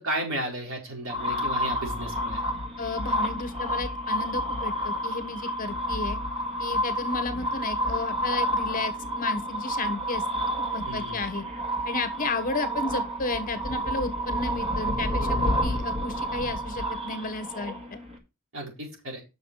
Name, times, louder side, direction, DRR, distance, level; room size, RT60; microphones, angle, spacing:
voice 1, 0.0-2.4 10.9-11.2 18.5-19.2, right 1 dB, 65° right, 4.5 m, -33 dB
sound 1, 1.1-18.2, equal, 30° right, 2.4 m, -29 dB
voice 2, 2.8-6.2 6.6-10.2 10.7-11.4 11.8-18.0, left 3 dB, 40° left, 1.3 m, -33 dB
9.3 x 6.5 x 4.6 m
head